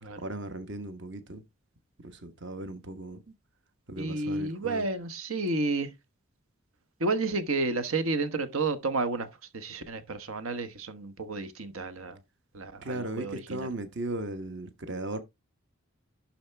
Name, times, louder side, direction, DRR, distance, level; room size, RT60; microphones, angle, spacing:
voice 1, 0.2-1.4 2.0-3.2 3.9-4.9 12.8-15.2, right 2 dB, 55° right, 1.2 m, -37 dB
voice 2, 4.0-5.9 7.0-9.3 9.5-12.2 12.5-13.7, right 3 dB, 80° right, 1.1 m, -31 dB
11.5 x 4.3 x 3.4 m
head